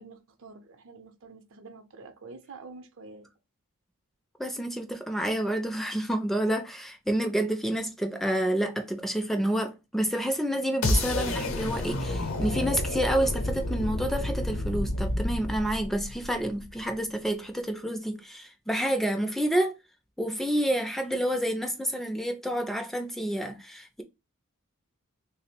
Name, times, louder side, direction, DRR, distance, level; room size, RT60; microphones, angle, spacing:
voice 1, 0.0-3.3, right 3 dB, 65° right, 0.6 m, -47 dB
voice 2, 4.4-19.8 20.2-24.0, right 1 dB, ahead, 0.4 m, -29 dB
sound 1, 10.8-16.8, left 1 dB, 65° left, 0.7 m, -30 dB
3.4 x 2.0 x 4.3 m
head